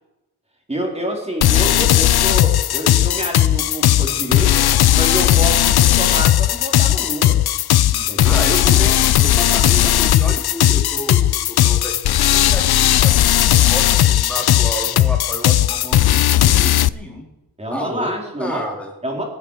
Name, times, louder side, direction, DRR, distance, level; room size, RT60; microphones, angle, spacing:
voice 1, 0.7-4.6 4.9-7.4 7.9-8.4 17.6-18.7 19.0-19.2, equal, 15° right, 0 dB, 4.2 m, -27 dB
sound 1, 1.4-16.9, left 12 dB, 75° left, 0.6 m, -16 dB
voice 2, 8.2-17.3 17.7-18.9, equal, 5° left, 0 dB, 4.0 m, -30 dB
23.5 x 8.8 x 5.0 m, 0.99 s
wide cardioid pair, 110°, 38 cm